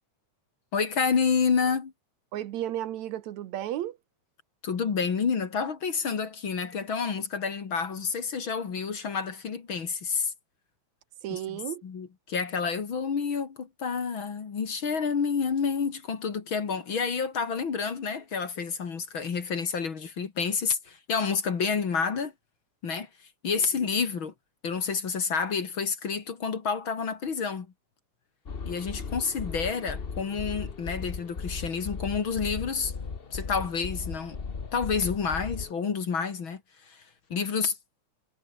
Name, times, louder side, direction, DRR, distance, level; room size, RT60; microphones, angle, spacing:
voice 1, 0.7-1.9 4.6-10.3 11.3-11.4 11.8-22.3 22.8-23.1 23.4-24.3 24.6-27.7 28.6-32.9 33.3-34.4 34.7-36.6 36.9-37.0 37.3-37.8, left 5 dB, 45° left, 2.7 m, -29 dB
voice 2, 2.3-4.0 11.2-11.8, right 12 dB, 75° right, 2.3 m, -33 dB
sound 1, 28.5-35.7, left 5 dB, 70° left, 0.5 m, -37 dB
omnidirectional pair, 3.4 m